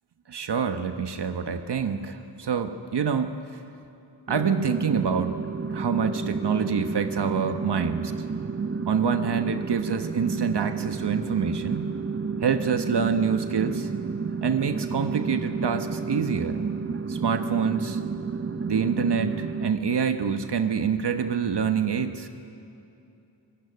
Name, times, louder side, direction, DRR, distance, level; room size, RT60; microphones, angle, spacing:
voice 1, 0.3-3.3 4.3-5.4 5.7-8.0 8.9-11.9 12.4-13.9 14.4-16.6 17.1-18.0 18.7-22.3, right 6 dB, 65° right, 8 dB, 1.3 m, -26 dB
sound 1, 4.3-19.7, right 5 dB, 30° right, 0.8 m, -31 dB
25.5 x 16.5 x 9.8 m, 2.7 s
cardioid pair, 75°, 44 cm